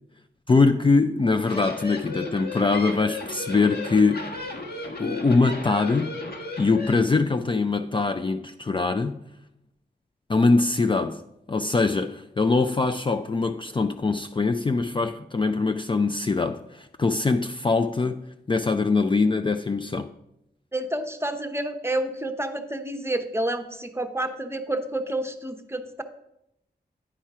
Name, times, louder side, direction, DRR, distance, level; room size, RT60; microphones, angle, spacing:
voice 1, 0.5-4.3 5.0-6.1 6.6-9.2 10.3-11.2 11.5-18.2 18.5-20.1, left 3 dB, 30° left, 0.4 m, -23 dB
sound 1, 1.2-6.9, left 2 dB, 65° left, 1.4 m, -35 dB
voice 2, 20.7-26.0, right 1 dB, 15° right, 0.8 m, -29 dB
10.0 x 4.3 x 4.7 m
cardioid pair, 60°, 18 cm